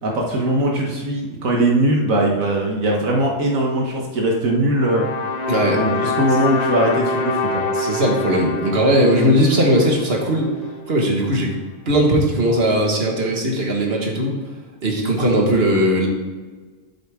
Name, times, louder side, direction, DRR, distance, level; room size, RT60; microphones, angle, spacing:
voice 1, 0.0-5.1 5.7-7.7, right 1 dB, 80° right, -1 dB, 1.7 m, -20 dB
sound 1, 4.7-10.9, left 3 dB, 40° left, 0.7 m, -25 dB
voice 2, 5.5-5.8 7.7-10.5 10.9-11.5 11.9-14.4 14.8-16.1, equal, 45° right, 0 dB, 1.9 m, -18 dB
11.5 x 7.9 x 3.7 m, 1.4 s
omnidirectional pair, 1.4 m